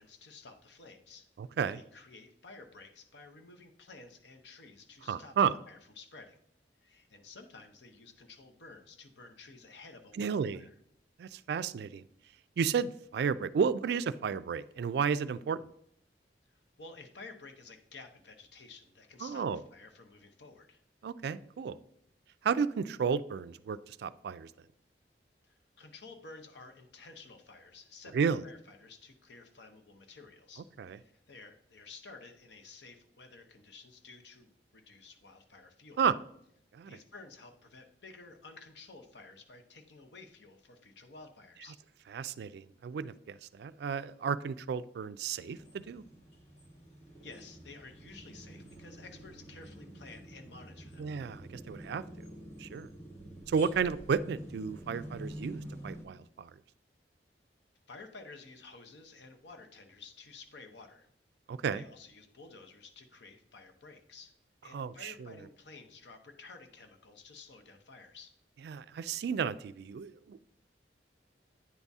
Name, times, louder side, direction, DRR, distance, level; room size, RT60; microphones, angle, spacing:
voice 1, 0.0-1.3 1.7-5.3 5.6-6.4 6.8-10.8 16.5-20.8 25.4-36.1 36.9-41.8 47.2-51.1 57.9-61.1 61.7-64.4 64.6-68.3, left 3 dB, 75° left, 5 dB, 0.8 m, -52 dB
voice 2, 1.4-1.8 5.1-5.6 10.2-10.6 11.2-12.0 12.6-15.7 19.2-19.6 21.0-21.8 22.4-24.5 28.1-28.4 30.8-31.0 36.0-36.2 36.7-37.0 42.1-46.0 51.0-52.3 52.6-52.9 53.5-56.5 61.5-61.8 64.7-65.3 68.6-70.4, right 6 dB, 65° right, 15 dB, 0.3 m, -32 dB
sound 1, 45.4-56.0, right 1 dB, 40° left, 1.4 m, -48 dB
9.3 x 4.1 x 3.5 m, 0.71 s
head